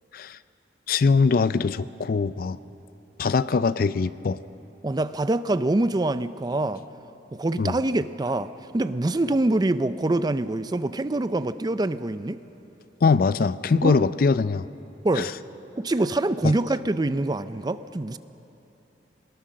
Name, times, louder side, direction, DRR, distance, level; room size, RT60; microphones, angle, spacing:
voice 1, 0.9-2.6 3.2-4.4 7.6-7.8 13.0-14.7 15.1-15.3 16.4-16.5, left 4 dB, 50° left, 16 dB, 0.4 m, -22 dB
voice 2, 4.8-6.8 7.3-12.4 13.8-14.1 15.0-15.3 15.7-18.2, right 2 dB, 20° right, 13 dB, 0.4 m, -25 dB
22.5 x 20.0 x 6.4 m, 2.9 s
head